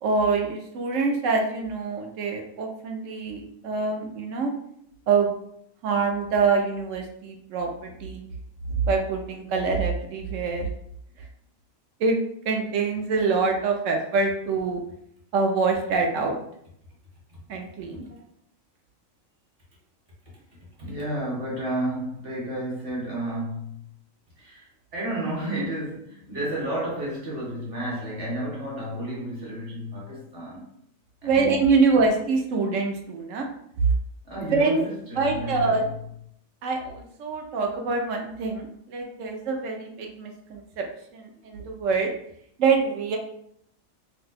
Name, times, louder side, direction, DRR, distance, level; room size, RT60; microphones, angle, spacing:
voice 1, 0.0-4.5 5.1-5.3 5.8-8.2 8.7-10.7 12.0-12.2 12.5-14.8 15.3-16.4 17.5-18.2 31.2-33.5 34.5-34.8 35.2-35.9 36.6-40.8 41.1-42.1 42.6-43.2, right 4 dB, 70° right, 0.9 m, -25 dB
voice 2, 20.8-23.8 24.4-30.7 31.2-31.7 34.2-35.9 41.4-41.5, right 1 dB, 45° right, 1.2 m, -32 dB
2.7 x 2.2 x 3.9 m
omnidirectional pair, 1.4 m